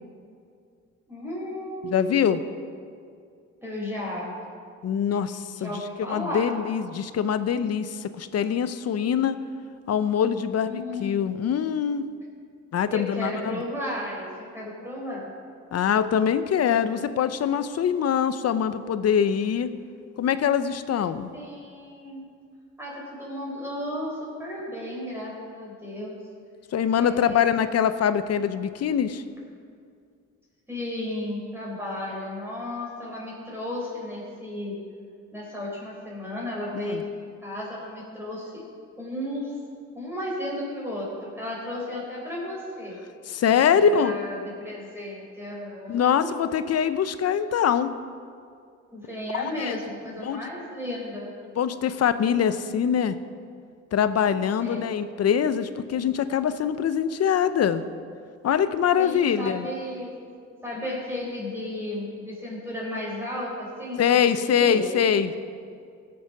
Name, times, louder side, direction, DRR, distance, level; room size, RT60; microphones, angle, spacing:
voice 1, 1.1-2.3 3.6-4.3 5.5-6.6 10.5-11.3 12.9-15.3 21.3-22.3 22.8-26.2 27.0-27.7 30.7-34.8 35.3-38.6 39.0-39.6 39.9-43.0 43.5-46.3 48.9-51.3 54.6-55.0 59.0-60.2 60.6-64.9, left 1 dB, 10° right, -5 dB, 3.9 m, -34 dB
voice 2, 1.8-2.4 4.8-9.4 9.9-12.1 12.7-13.6 15.7-19.7 20.2-21.3 26.7-29.2 36.8-37.0 43.3-44.1 45.9-47.9 49.3-49.8 50.2-50.4 51.6-53.2 53.9-57.8 58.4-59.7 64.0-65.3, left 8 dB, 55° left, 12 dB, 0.7 m, -23 dB
17.0 x 7.5 x 5.9 m, 2.3 s
cardioid pair, 90°, 30 cm